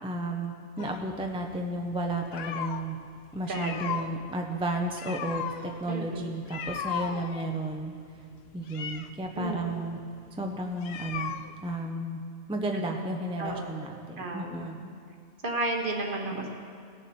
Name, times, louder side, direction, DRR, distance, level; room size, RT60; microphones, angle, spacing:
voice 1, 0.0-3.0 3.3-7.9 8.5-10.0 10.3-11.3 11.6-12.2 12.5-14.9 16.3-16.5, right 1 dB, 5° right, 2 dB, 0.5 m, -33 dB
sound 1, 0.8-2.9 3.3-11.8, left 8 dB, 65° left, 0.7 m, -37 dB
voice 2, 3.5-4.0 5.9-6.3 9.3-9.8 12.7-12.9 13.4-13.8 14.2-14.7 15.4-16.5, right 2 dB, 45° right, 2 dB, 1.2 m, -33 dB
18.5 x 6.9 x 4.3 m, 2.2 s
omnidirectional pair, 1.3 m